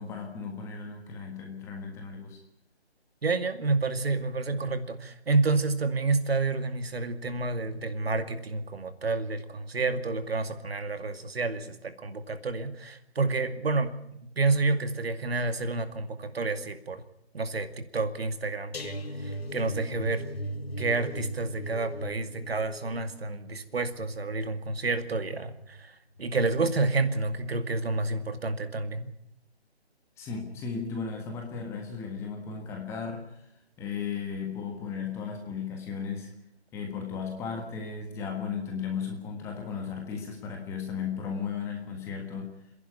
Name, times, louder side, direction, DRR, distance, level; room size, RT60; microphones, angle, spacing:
voice 1, 0.0-2.4 30.2-33.4 33.8-36.3 36.7-42.5, left 6 dB, 10° left, 2 dB, 1.5 m, -35 dB
voice 2, 3.2-13.9 14.4-17.0 17.3-19.0 19.2-20.3 20.8-25.9 26.2-29.1, right 3 dB, 65° right, 9 dB, 2.4 m, -29 dB
sound 1, 18.7-25.8 26.2-26.5 26.8-26.9, equal, 65° left, 2.4 m, -38 dB
27.5 x 11.0 x 9.7 m, 0.79 s
figure-of-eight pair, 155°, 33 cm